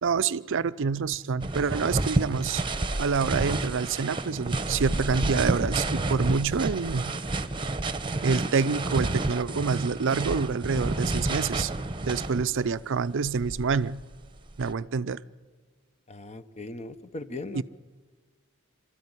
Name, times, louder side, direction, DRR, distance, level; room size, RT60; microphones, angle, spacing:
voice 1, 0.0-2.6 3.0-7.1 8.2-11.7 12.0-14.0 14.6-15.2 17.5-17.6, right 5 dB, 60° right, 15 dB, 0.5 m, -27 dB
sound 1, 1.4-12.7 13.3-14.7, right 2 dB, 25° right, 1.0 m, -30 dB
voice 2, 16.1-17.6, left 2 dB, 30° left, 11 dB, 1.0 m, -38 dB
27.0 x 13.0 x 9.7 m, 1.5 s
head